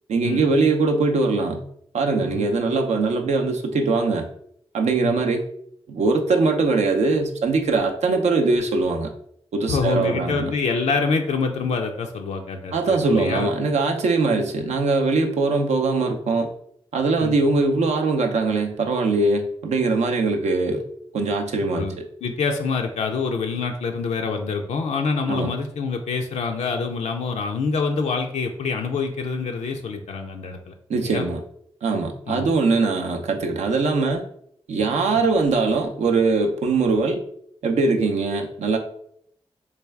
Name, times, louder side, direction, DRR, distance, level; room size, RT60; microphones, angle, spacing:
voice 1, 0.1-1.6 1.9-4.3 4.7-5.4 5.9-9.1 9.5-10.5 12.7-16.5 16.9-20.8 21.1-22.0 25.3-25.5 30.9-31.4 31.8-34.2 34.7-37.2 37.6-38.8, right 3 dB, 85° right, 4 dB, 0.5 m, -21 dB
voice 2, 9.7-13.5 14.3-14.4 17.2-17.4 21.7-31.2 32.3-32.5, left 4 dB, 85° left, 3 dB, 0.4 m, -26 dB
3.3 x 2.3 x 3.3 m, 0.68 s
cardioid pair, 45°, 11 cm